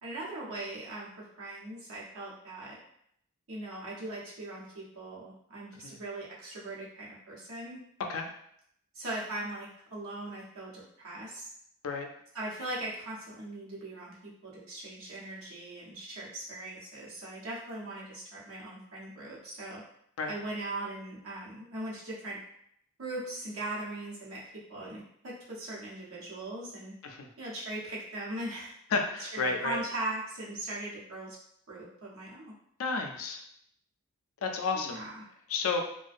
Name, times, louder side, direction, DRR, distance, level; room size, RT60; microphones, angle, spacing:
voice 1, 0.0-2.7 3.5-7.8 8.9-11.5 12.3-19.8 20.3-22.4 23.0-26.9 27.4-28.7 29.2-31.4 31.7-32.5 34.7-35.2, right 2 dB, 85° right, -5 dB, 0.8 m, -40 dB
voice 2, 28.9-29.8 32.8-33.4 34.4-35.0 35.5-35.8, left 4 dB, 75° left, 3 dB, 0.4 m, -31 dB
2.5 x 2.1 x 2.4 m, 0.71 s
head